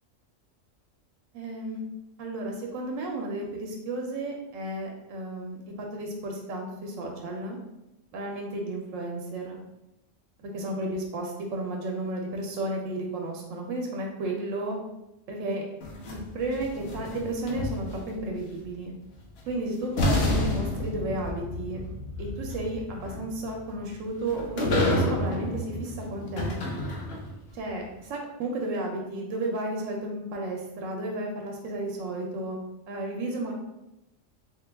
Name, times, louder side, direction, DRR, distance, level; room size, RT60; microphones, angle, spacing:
voice 1, 1.3-1.8 2.2-7.6 8.1-9.6 10.4-14.8 15.3-15.6 16.1-18.9 19.5-21.8 22.2-26.6 27.5-32.6 32.9-33.5, right 1 dB, 90° right, 1 dB, 1.0 m, -33 dB
sound 1, 15.8-18.2 19.4-19.5 20.0-27.4, left 1 dB, 60° left, 0.8 m, -30 dB
3.3 x 2.2 x 3.4 m, 0.92 s
omnidirectional pair, 1.3 m